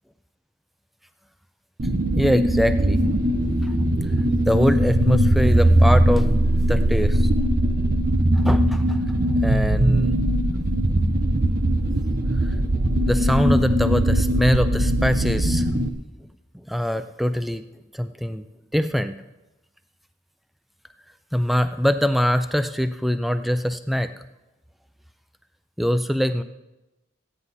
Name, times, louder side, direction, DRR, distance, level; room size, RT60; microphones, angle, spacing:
sound 1, 1.8-15.9, right 1 dB, 45° right, 0.8 m, -20 dB
voice 1, 2.1-3.0 3.6-3.8 4.2-6.3 6.7-7.3 8.3-9.2 9.4-10.2 12.4-12.5 13.0-15.7 16.7-17.6 17.9-18.4 18.7-19.1 21.3-24.1 25.8-26.4, equal, ahead, 10 dB, 0.4 m, -23 dB
14.5 x 9.7 x 4.2 m, 1.0 s
head